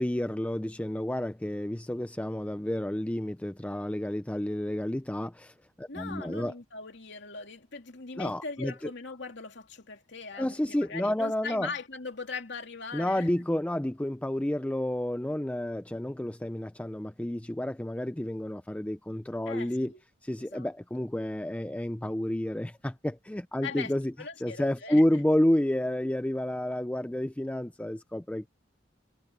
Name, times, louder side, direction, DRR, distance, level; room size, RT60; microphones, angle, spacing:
voice 1, 0.0-6.5 8.2-8.7 10.4-11.7 12.9-19.9 20.2-24.1 24.4-28.5, left 1 dB, 5° left, 0.4 m, -30 dB
voice 2, 5.9-13.3 19.5-20.0 20.4-20.7 23.6-23.9 24.2-25.0, left 4 dB, 65° left, 2.6 m, -40 dB
head